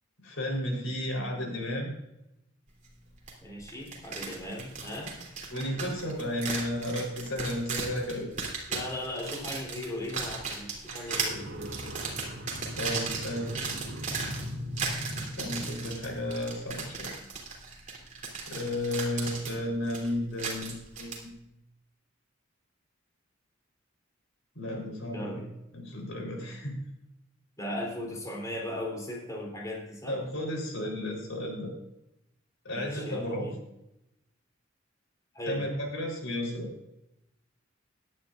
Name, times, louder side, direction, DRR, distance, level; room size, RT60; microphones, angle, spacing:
voice 1, 0.2-1.9 5.5-8.3 12.8-13.6 15.1-17.1 18.5-21.4 24.5-25.4 25.7-26.8 30.1-31.7 32.6-33.5 35.5-36.7, left 1 dB, 90° left, 2 dB, 4.0 m, -33 dB
sound 1, 3.3-3.4 3.7-21.2, right 4 dB, 40° right, 3.2 m, -37 dB
voice 2, 3.4-5.2 8.7-12.0 25.1-25.4 27.6-30.2 32.7-33.6 35.3-35.6, left 1 dB, 15° left, -1 dB, 3.3 m, -37 dB
sound 2, 11.1-16.4, equal, 80° right, 2.1 m, -40 dB
17.0 x 11.0 x 2.6 m, 0.87 s
head